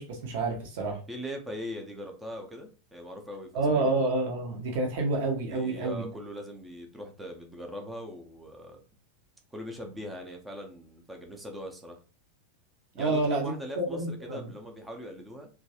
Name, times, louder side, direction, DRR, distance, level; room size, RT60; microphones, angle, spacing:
voice 1, 0.0-1.0 3.5-6.0 12.9-14.5, right 2 dB, 50° right, 0.9 m, -29 dB
voice 2, 1.1-3.9 5.5-8.8 9.5-12.0 12.9-15.5, equal, 10° right, 0.7 m, -41 dB
3.0 x 2.4 x 2.8 m
figure-of-eight pair, 90°, 0 cm